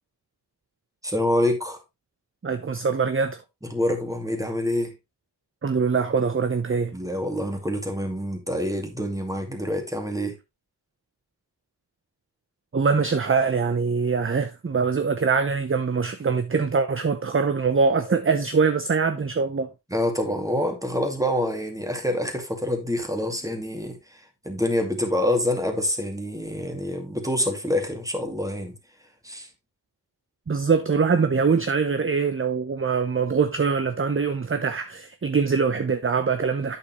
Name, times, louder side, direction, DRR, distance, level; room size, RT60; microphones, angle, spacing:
voice 1, 1.0-1.8 3.6-4.9 6.9-10.4 19.9-24.0 24.4-28.8 29.2-29.5, left 1 dB, 10° right, 2.3 m, -26 dB
voice 2, 2.4-3.4 5.6-6.9 12.7-19.7 30.5-36.8, right 5 dB, 30° right, 0.7 m, -23 dB
8.4 x 6.9 x 3.1 m
wide cardioid pair, 70°, 41 cm